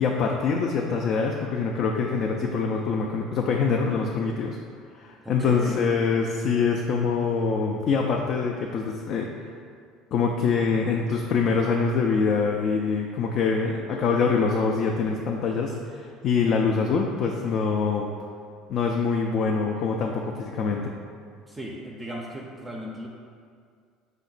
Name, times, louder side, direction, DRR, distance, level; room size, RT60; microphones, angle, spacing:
voice 1, 0.0-4.6 4.9-9.3 10.1-18.1 18.7-20.9, left 5 dB, 55° left, 1 dB, 0.3 m, -24 dB
voice 2, 5.2-5.8 21.5-23.1, equal, 15° right, -2 dB, 0.4 m, -36 dB
5.0 x 2.1 x 3.9 m, 2.1 s
supercardioid pair, 100°, 0 cm